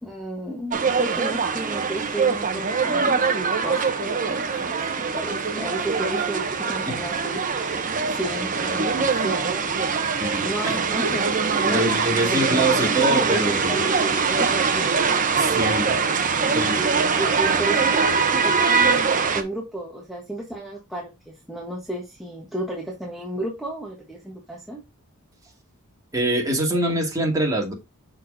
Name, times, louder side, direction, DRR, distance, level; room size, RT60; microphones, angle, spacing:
voice 1, 0.0-3.4 3.6-11.3 11.5-11.9 12.3-13.4 13.7-14.7 16.2-24.8, right 1 dB, ahead, -3 dB, 1.4 m, -33 dB
sound 1, 0.7-19.4, right 5 dB, 40° right, 0.9 m, -23 dB
voice 2, 10.2-10.8 11.6-13.8 15.3-15.9 16.5-16.7 26.1-27.7, right 1 dB, 15° right, -1 dB, 2.4 m, -24 dB
6.4 x 6.3 x 2.7 m, 0.22 s
head